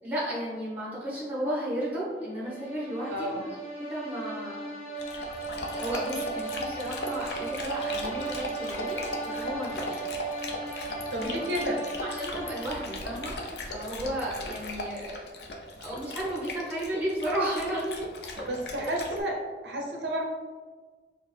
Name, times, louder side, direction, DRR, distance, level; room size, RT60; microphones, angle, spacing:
voice 1, 0.0-3.5 3.8-4.7 5.7-10.0 12.0-13.3 13.7-15.2 15.8-18.1 18.9-19.0, right 1 dB, 10° right, -6 dB, 1.2 m, -33 dB
sound 1, 2.3-13.2, right 3 dB, 35° left, 0.9 m, -37 dB
voice 2, 3.1-3.4 11.1-11.8 18.5-19.3 19.6-20.2, right 1 dB, 75° right, 1 dB, 0.5 m, -31 dB
Dog, 5.0-19.2, left 1 dB, 65° left, 0.5 m, -38 dB
4.6 x 2.4 x 3.2 m, 1.4 s
head